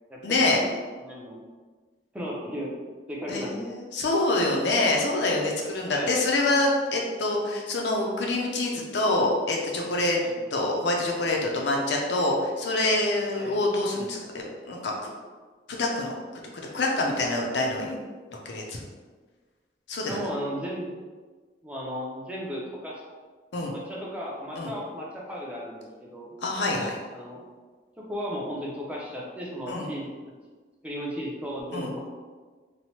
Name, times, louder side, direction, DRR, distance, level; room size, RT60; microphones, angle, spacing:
voice 1, 0.2-0.6 3.3-10.2 10.5-14.2 14.6-15.1 15.7-16.1 16.7-18.0 18.5-18.8 19.9-20.2 23.5-23.7 24.5-24.7 26.4-27.0 29.7-29.9 31.7-31.9, left 2 dB, 70° left, -1 dB, 0.5 m, -26 dB
voice 2, 1.0-1.4 2.1-2.7 3.1-3.6 5.9-6.2 10.2-10.4 13.3-13.6 20.0-21.0 21.6-23.0 23.7-26.4 27.1-27.5 28.0-30.2 30.8-32.0, equal, 5° right, -4 dB, 0.4 m, -35 dB
3.1 x 2.0 x 2.8 m, 1.4 s
head